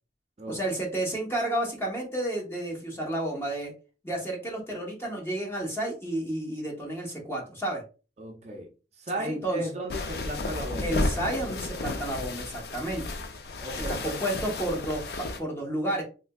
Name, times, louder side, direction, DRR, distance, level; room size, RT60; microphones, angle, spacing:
voice 1, 0.5-3.7 4.0-7.8 9.2-9.6 10.8-13.0 13.9-16.0, right 1 dB, 15° left, 0.9 m, -31 dB
voice 2, 8.2-8.7 9.0-11.0 13.6-14.2, right 1 dB, 40° right, 0.5 m, -35 dB
sound 1, 9.9-15.4, left 2 dB, 60° left, 0.4 m, -33 dB
3.4 x 2.7 x 2.2 m
head